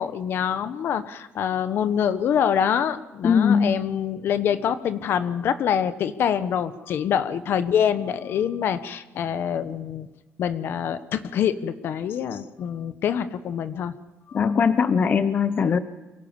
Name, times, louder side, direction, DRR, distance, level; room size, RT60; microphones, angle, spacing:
voice 1, 0.0-10.1 10.4-13.9 14.3-14.5, left 8 dB, 65° left, 11 dB, 1.2 m, -25 dB
voice 2, 3.2-3.7 14.3-15.8, left 6 dB, 45° left, 11 dB, 1.0 m, -20 dB
24.0 x 17.0 x 7.2 m, 1.1 s
cardioid pair, 110°, 4 cm